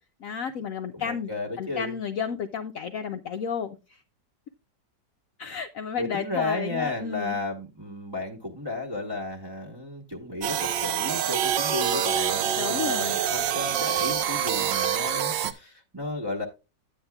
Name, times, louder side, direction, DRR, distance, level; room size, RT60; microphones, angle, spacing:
voice 1, 0.2-1.3 1.6-4.0 5.4-7.4 12.6-13.2, left 7 dB, 65° left, 0.8 m, -32 dB
voice 2, 0.9-1.9 6.0-16.4, left 2 dB, 20° right, 0.9 m, -33 dB
sound 1, 10.4-15.5, right 9 dB, 85° right, 1.4 m, -26 dB
11.0 x 8.8 x 2.3 m
omnidirectional pair, 2.0 m